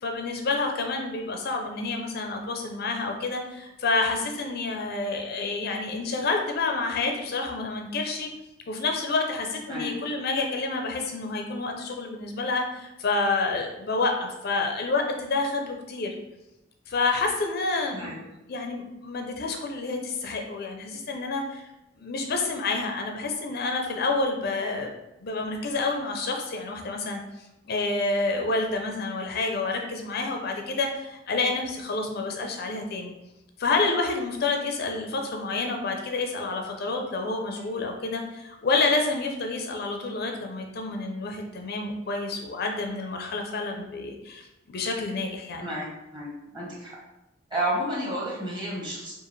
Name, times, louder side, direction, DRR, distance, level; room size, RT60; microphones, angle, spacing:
voice 1, 0.0-8.3 8.7-16.1 16.9-18.2 18.5-21.6 22.0-24.9 25.2-27.2 27.7-33.1 33.6-45.6, left 3 dB, 50° left, 3 dB, 0.4 m, -28 dB
voice 2, 46.1-47.0 47.5-49.1, right 1 dB, 25° right, -5 dB, 1.2 m, -31 dB
4.8 x 2.5 x 3.1 m, 0.93 s
head